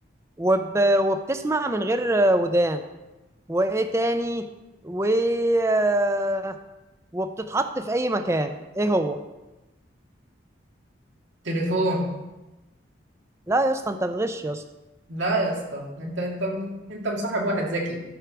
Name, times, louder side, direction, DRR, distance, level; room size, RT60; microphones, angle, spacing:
voice 1, 0.4-2.8 3.5-4.4 4.8-6.6 7.1-9.2 13.5-14.6, right 1 dB, 15° right, 8 dB, 0.5 m, -23 dB
voice 2, 11.4-12.1 15.1-18.0, right 1 dB, 80° right, -1 dB, 2.2 m, -27 dB
12.5 x 4.7 x 6.0 m, 1.0 s
head